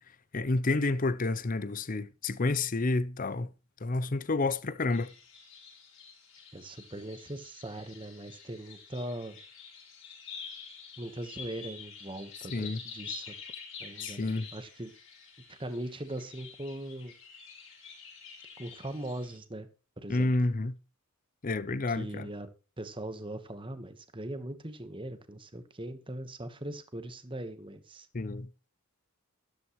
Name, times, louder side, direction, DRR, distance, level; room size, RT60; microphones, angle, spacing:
voice 1, 0.3-3.5 3.8-5.1 12.5-12.8 14.0-14.5 20.1-20.7 21.4-22.3 28.1-28.5, left 2 dB, 35° left, 0.6 m, -29 dB
sound 1, 4.9-19.4, left 5 dB, 60° left, 5.3 m, -48 dB
voice 2, 6.5-9.4 11.0-13.3 13.8-14.9 15.5-17.1 18.6-19.7 20.0-20.3 21.9-22.5 22.8-28.1, right 1 dB, 20° right, 1.2 m, -40 dB
13.0 x 11.0 x 3.1 m
head